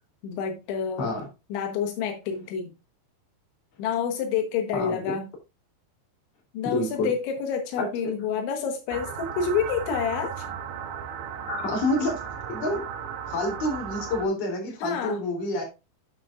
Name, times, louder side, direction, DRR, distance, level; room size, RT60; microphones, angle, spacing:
voice 1, 0.2-1.1 1.5-2.7 3.8-5.3 6.5-10.5 14.8-15.2, left 6 dB, 85° left, 3.5 m, -28 dB
voice 2, 6.6-7.1 7.8-7.9 11.5-12.2 12.5-12.8 13.3-15.6, left 2 dB, 40° left, 3.8 m, -28 dB
sound 1, 8.9-14.3, right 8 dB, 75° right, 3.5 m, -35 dB
10.5 x 7.5 x 2.4 m
omnidirectional pair, 5.2 m